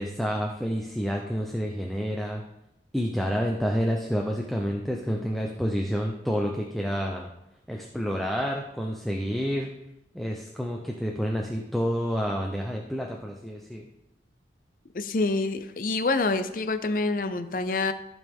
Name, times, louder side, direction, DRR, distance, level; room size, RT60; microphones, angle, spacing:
voice 1, 0.0-2.4 2.9-7.3 7.7-9.7 10.1-13.8, equal, ahead, 0 dB, 0.6 m, -29 dB
voice 2, 14.9-17.9, left 3 dB, 50° left, 10 dB, 0.5 m, -26 dB
14.0 x 5.3 x 3.5 m, 0.86 s
head